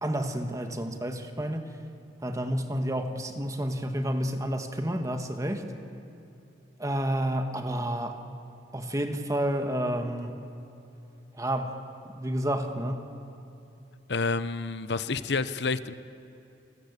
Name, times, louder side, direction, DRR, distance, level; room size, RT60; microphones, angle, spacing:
voice 1, 0.0-1.7 2.2-5.6 6.8-8.2 8.7-10.4 11.3-11.8 12.1-13.0, right 1 dB, 20° right, 6 dB, 1.7 m, -30 dB
voice 2, 14.1-15.9, left 4 dB, 70° left, 13 dB, 0.9 m, -29 dB
28.5 x 20.5 x 8.3 m, 2.9 s
head